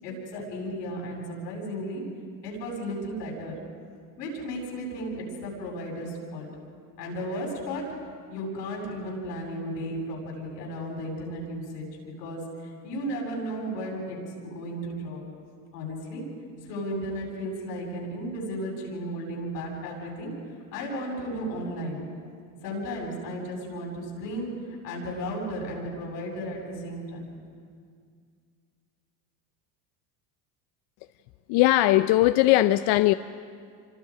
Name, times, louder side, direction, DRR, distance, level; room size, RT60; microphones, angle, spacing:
voice 1, 0.0-2.0 2.4-3.6 4.2-6.5 7.0-8.0 8.3-11.9 12.2-14.2 14.4-15.2 15.7-16.2 16.6-20.3 20.7-22.1 22.6-27.3, equal, 90° left, -1 dB, 7.9 m, -34 dB
voice 2, 31.5-33.1, left 16 dB, 55° left, 11 dB, 0.7 m, -19 dB
27.5 x 26.0 x 5.1 m, 2.2 s
hypercardioid pair, 90°, 48 cm